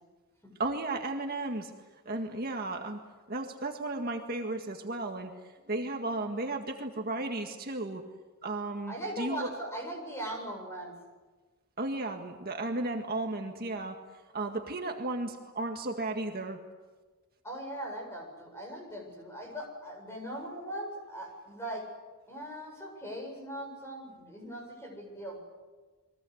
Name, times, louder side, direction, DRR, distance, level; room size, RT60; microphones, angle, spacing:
voice 1, 0.6-1.7 2.1-3.0 3.3-5.3 5.7-8.0 8.4-9.5 11.8-14.0 14.3-16.6, right 2 dB, 45° right, 3 dB, 1.9 m, -34 dB
voice 2, 8.9-11.0 17.4-21.8 22.3-25.4, right 1 dB, 10° left, 1 dB, 7.5 m, -40 dB
29.5 x 23.0 x 8.1 m, 1.3 s
head